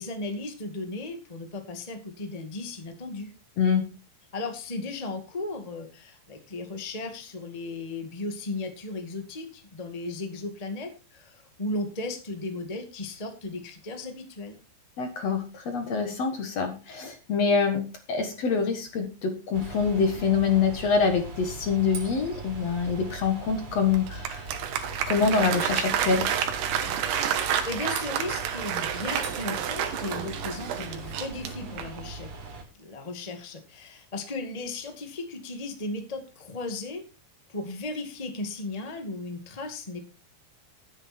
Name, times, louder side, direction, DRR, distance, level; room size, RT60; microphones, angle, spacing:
voice 1, 0.0-3.3 4.3-14.6 27.2-32.3 32.8-37.0 37.5-40.0, left 2 dB, 75° left, 5 dB, 0.3 m, -36 dB
voice 2, 15.0-24.5 25.1-26.3, left 5 dB, 55° left, 7 dB, 1.9 m, -25 dB
sound 1, 19.5-32.6, right 3 dB, 45° right, 4.0 m, -41 dB
Applause, 23.9-32.1, right 9 dB, 75° right, 3.5 m, -29 dB
13.0 x 9.9 x 4.3 m, 0.30 s
omnidirectional pair, 5.0 m